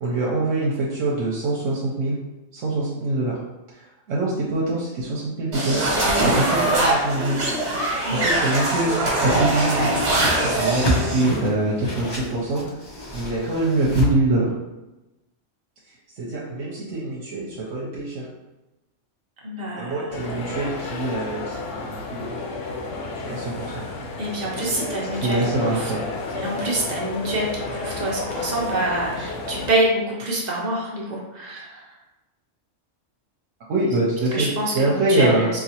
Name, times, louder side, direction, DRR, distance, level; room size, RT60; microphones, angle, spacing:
voice 1, 0.0-2.2 2.5-3.4 3.7-5.8 6.2-7.4 7.9-9.9 10.4-12.6 13.1-14.5 16.2-18.3 19.7-22.4 22.7-22.8 23.3-23.8 24.7-24.9 25.1-26.0 33.7-35.5, right 2 dB, 80° right, -4 dB, 1.0 m, -24 dB
sound 1, 5.5-11.3, right 2 dB, 60° right, 1.2 m, -22 dB
Whoosh swoosh swish, 9.1-14.1, equal, 30° left, 0.4 m, -28 dB
voice 2, 19.4-20.3 24.2-25.9 26.3-31.9 34.3-35.6, right 1 dB, 40° right, -3 dB, 0.7 m, -26 dB
sound 2, 20.1-29.7, left 3 dB, 80° left, 0.9 m, -31 dB
4.0 x 2.3 x 2.8 m, 1.0 s
omnidirectional pair, 1.3 m